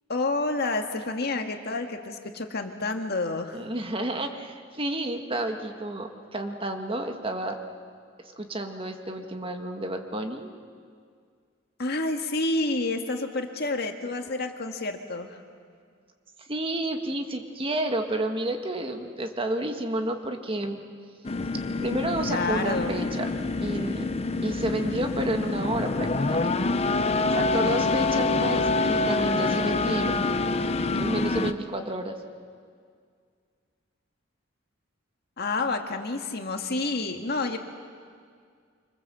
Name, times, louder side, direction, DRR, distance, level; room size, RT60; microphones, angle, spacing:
voice 1, 0.1-3.6 11.8-15.4 22.3-23.0 35.4-37.6, left 2 dB, 55° left, 4 dB, 1.8 m, -29 dB
voice 2, 3.5-7.6 8.2-10.5 16.5-20.8 21.8-23.3 23.6-24.1 24.4-26.5 27.3-30.3 31.0-32.2, right 1 dB, 30° right, 5 dB, 1.6 m, -30 dB
sound 1, 21.2-31.5, left 3 dB, 30° left, 0.8 m, -26 dB
25.5 x 25.5 x 7.7 m, 2.1 s
head